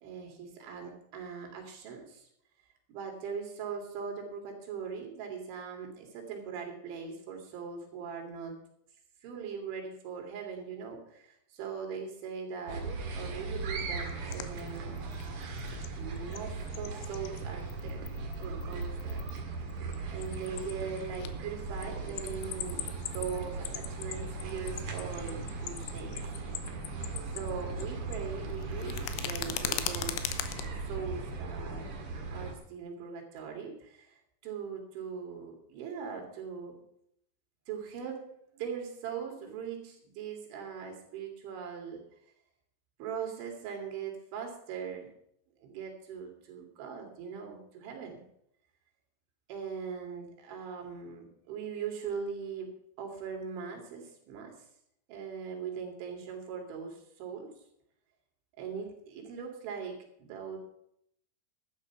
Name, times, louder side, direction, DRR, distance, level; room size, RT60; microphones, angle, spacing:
voice 1, 0.0-2.3 2.9-8.6 9.2-12.9 13.2-15.0 15.9-18.1 18.4-19.2 20.1-26.2 27.3-30.3 30.9-31.9 32.3-36.8 37.7-38.2 38.5-42.0 43.0-45.1 45.6-48.2 49.5-54.5 55.1-57.5 58.6-60.6, right 6 dB, 80° right, 3 dB, 4.9 m, -40 dB
sound 1, 12.7-32.5, right 3 dB, 50° right, 1.8 m, -38 dB
sound 2, 13.9-15.9 16.2-17.4 17.7-19.4 19.7-21.3 21.6-27.8 28.1-30.7, left 12 dB, 85° left, 3.3 m, -39 dB
12.5 x 10.0 x 5.9 m, 0.72 s
omnidirectional pair, 5.3 m